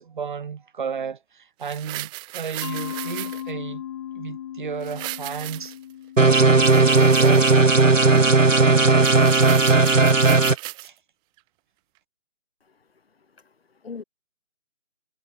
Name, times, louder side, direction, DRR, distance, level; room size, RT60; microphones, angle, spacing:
voice 1, 0.0-3.8 4.1-5.7 6.3-9.3 10.8-11.0, right 6 dB, 40° right, 3.3 m, -34 dB
sound 1, 1.6-3.5 4.8-5.9 6.4-7.8 8.1-8.2 8.6-8.7 9.0-10.9 11.4-11.5, right 25 dB, 10° right, 2.5 m, -36 dB
Mallet percussion, 2.6-7.4, left 11 dB, 20° left, 1.6 m, -37 dB
sound 2, 6.2-10.5, right 3 dB, 90° right, 1.6 m, -16 dB
voice 2, 13.4-14.0, left 5 dB, 50° left, 6.7 m, -41 dB
figure-of-eight pair, 150°, 37 cm